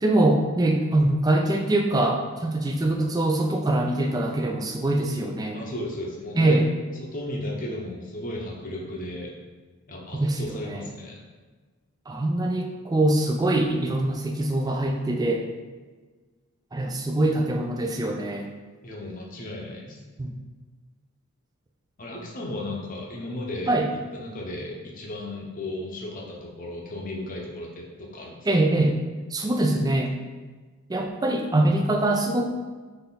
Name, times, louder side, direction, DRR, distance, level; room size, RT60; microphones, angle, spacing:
voice 1, 0.0-5.6 6.3-6.7 10.1-10.4 10.6-10.8 12.1-15.4 16.7-18.5 20.2-20.3 23.7-23.9 28.5-29.0 29.3-30.1 30.9-32.4, right 1 dB, 15° right, 2 dB, 0.4 m, -23 dB
voice 2, 5.5-6.6 7.0-9.3 9.9-11.2 18.8-20.0 22.0-23.8 24.1-28.5, left 1 dB, 35° left, -2 dB, 0.8 m, -35 dB
4.0 x 3.3 x 3.9 m, 1.4 s
head